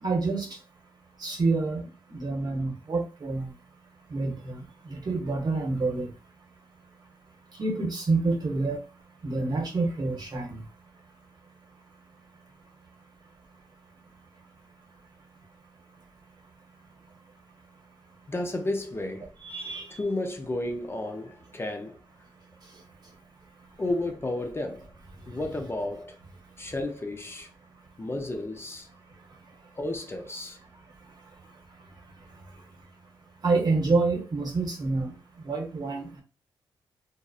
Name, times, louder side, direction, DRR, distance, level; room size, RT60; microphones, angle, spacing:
voice 1, 0.0-0.5 1.2-3.5 4.1-4.6 4.9-6.1 7.6-8.8 9.2-10.6 19.4-20.0 33.4-35.1 35.4-36.2, right 3 dB, 55° right, 0.9 m, -27 dB
voice 2, 18.3-19.3 19.9-22.0 23.8-24.9 25.3-26.2 26.6-27.5 28.0-28.9 29.8-30.6, left 2 dB, 30° left, 0.5 m, -32 dB
2.5 x 2.0 x 2.4 m
cardioid pair, 60°, 9 cm